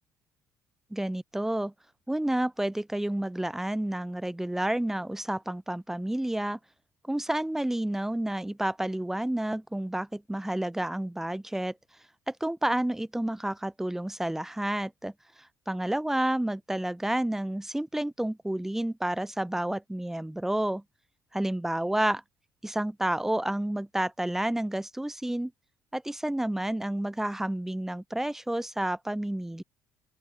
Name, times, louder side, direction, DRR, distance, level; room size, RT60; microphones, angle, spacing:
voice 1, 0.9-1.7 2.1-6.6 7.0-11.7 12.3-15.1 15.7-20.8 21.3-22.2 22.6-25.5 25.9-29.6, right 1 dB, 5° right, 3.3 m, -30 dB
open air
cardioid pair, 105°, 7 cm